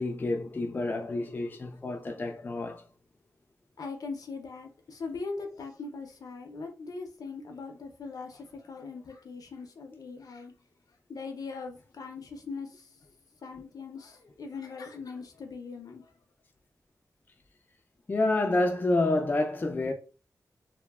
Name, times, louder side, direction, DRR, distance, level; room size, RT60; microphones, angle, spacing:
voice 1, 0.0-2.8 18.1-19.9, left 2 dB, 30° left, 0.3 m, -28 dB
voice 2, 3.8-10.5 11.1-12.9 13.4-16.1, left 4 dB, 75° left, 0.6 m, -40 dB
3.0 x 2.1 x 2.2 m
wide cardioid pair, 105°, 6 cm